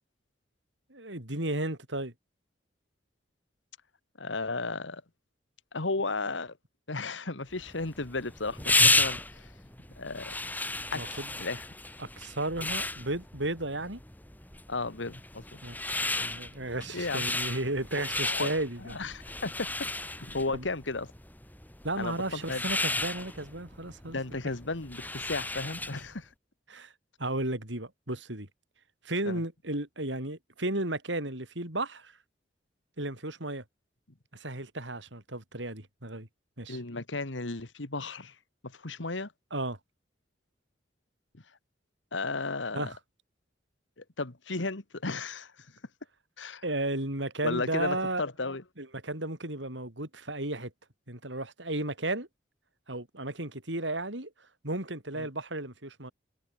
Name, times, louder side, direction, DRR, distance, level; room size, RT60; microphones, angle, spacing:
voice 1, 0.9-2.1 10.9-11.3 12.0-14.0 15.6-15.8 16.2-19.0 20.5-20.7 21.8-24.2 26.7-26.9 27.2-28.5 29.0-32.1 33.0-33.6 34.3-36.3 36.6-36.8 39.5-39.8 42.7-43.0 46.6-48.2 48.8-50.7 51.1-52.3 52.9-54.3 54.6-56.1, right 2 dB, 75° right, 6.3 m, -34 dB
voice 2, 4.2-5.0 5.7-6.5 6.9-9.5 10.0-10.3 10.9-11.6 14.7-15.6 16.9-17.4 18.2-18.5 18.8-19.7 20.2-21.1 22.0-22.6 24.1-26.3 29.3-29.4 36.7-38.3 38.6-39.3 42.1-42.9 44.2-45.5 46.4-46.6 47.4-48.6 55.2-55.3, left 3 dB, 85° left, 1.9 m, -34 dB
sound 1, 7.6-26.1, left 2 dB, 10° left, 6.8 m, -33 dB
head